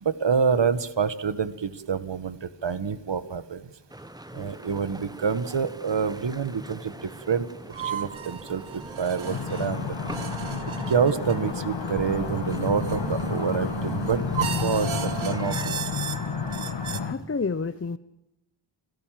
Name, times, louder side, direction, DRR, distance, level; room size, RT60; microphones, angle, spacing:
voice 1, 0.0-3.6 4.3-7.5 7.8-9.9 10.9-15.8, right 6 dB, 65° right, 13 dB, 1.6 m, -27 dB
sound 1, 3.9-15.8, right 1 dB, 10° right, 1.0 m, -43 dB
sound 2, 7.7-17.0, right 7 dB, 85° right, 1.5 m, -35 dB
sound 3, 9.2-17.1, left 5 dB, 65° left, 2.2 m, -31 dB
voice 2, 17.0-18.0, left 4 dB, 30° left, 12 dB, 0.9 m, -29 dB
30.0 x 18.0 x 7.6 m, 0.87 s
wide cardioid pair, 75°, 47 cm